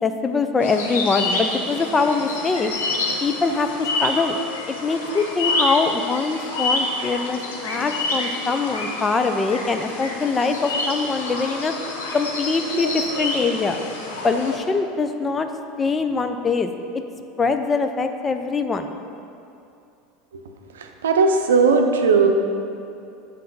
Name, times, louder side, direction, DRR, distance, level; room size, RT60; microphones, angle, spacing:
voice 1, 0.0-2.7 3.2-4.4 4.7-11.7 12.1-13.8 14.2-15.5 15.8-16.7 17.4-19.0, left 4 dB, 25° left, 7 dB, 0.5 m, -23 dB
sound 1, 0.6-14.6, left 2 dB, 85° left, 0.9 m, -28 dB
voice 2, 20.8-22.3, right 4 dB, 85° right, 4 dB, 0.6 m, -17 dB
7.5 x 4.0 x 5.4 m, 2.6 s
hypercardioid pair, 90°, 0 cm